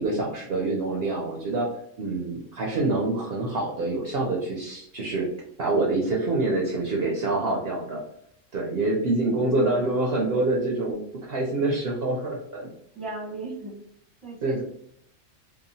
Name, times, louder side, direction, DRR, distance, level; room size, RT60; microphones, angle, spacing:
voice 1, 0.0-1.7 2.0-5.3 5.6-8.0 8.5-11.0 11.3-12.7 14.4-14.6, right 2 dB, 60° right, -2 dB, 0.7 m, -26 dB
voice 2, 9.4-10.0 10.8-10.9 12.9-13.8 14.2-14.6, right 2 dB, ahead, -5 dB, 0.6 m, -37 dB
2.9 x 2.2 x 2.6 m, 0.71 s
omnidirectional pair, 1.3 m